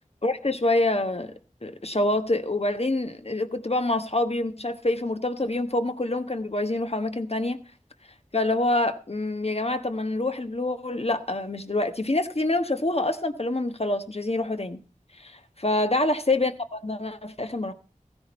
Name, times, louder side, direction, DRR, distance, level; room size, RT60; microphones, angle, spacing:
voice 1, 0.2-1.3 1.6-7.6 8.3-14.8 15.2-17.7, left 2 dB, 50° left, 1.3 m, -26 dB
16.0 x 10.5 x 4.2 m
wide cardioid pair, 40°, 14 cm